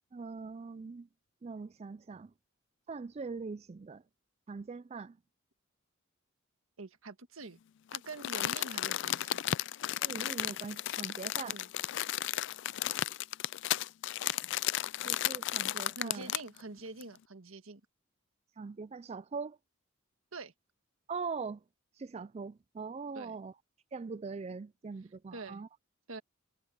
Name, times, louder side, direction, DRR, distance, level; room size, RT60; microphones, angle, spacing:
voice 1, 0.1-1.1 1.4-2.3 2.9-4.0 4.5-5.2 10.0-11.6 15.0-16.3 18.6-19.6 21.1-21.6 22.0-23.5 23.9-25.7, right 4 dB, 30° right, 0.3 m, -41 dB
voice 2, 6.8-7.6 7.9-9.4 11.4-11.7 15.9-17.8 20.3-20.5 23.1-23.3 25.3-25.6 26.1-26.2, right 3 dB, 85° right, 1.6 m, -45 dB
Crumpling crinkling, 7.9-16.6 17.0-17.1, left 13 dB, 60° left, 0.3 m, -34 dB
head